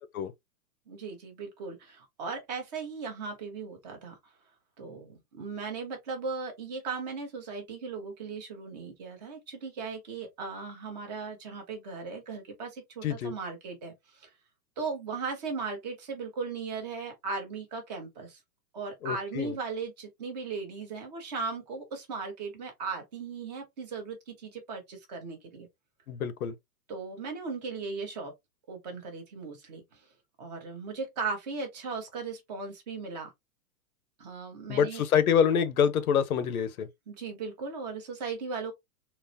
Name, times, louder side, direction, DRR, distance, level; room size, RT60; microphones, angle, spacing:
voice 1, 0.9-4.2 4.8-14.3 14.8-18.4 18.7-25.7 26.9-28.3 28.7-30.1 30.4-33.3 34.2-35.0 37.1-38.7, right 4 dB, 30° right, 0.9 m, -37 dB
voice 2, 13.0-13.3 19.0-19.5 26.1-26.5 34.7-36.9, left 7 dB, 70° left, 0.7 m, -26 dB
3.9 x 2.1 x 2.6 m
hypercardioid pair, 170°, 45 cm